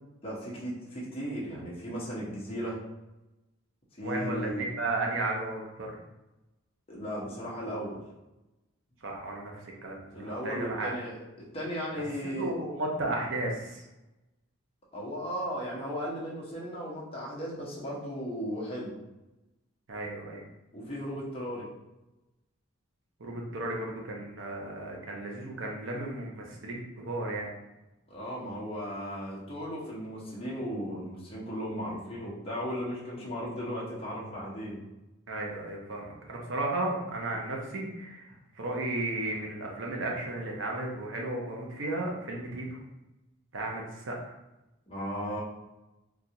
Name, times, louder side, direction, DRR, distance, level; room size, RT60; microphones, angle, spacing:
voice 1, 0.2-2.7 4.0-4.7 6.9-8.0 10.1-11.1 11.5-12.5 14.9-18.9 20.7-21.7 28.1-34.8 44.9-45.4, equal, 25° left, -5 dB, 0.8 m, -36 dB
voice 2, 4.0-5.9 9.0-10.9 12.4-13.8 19.9-20.4 23.2-27.5 35.3-38.3 38.5-42.8 43.5-44.3, right 2 dB, 60° right, -1 dB, 0.6 m, -34 dB
3.8 x 2.4 x 2.8 m, 1.0 s
head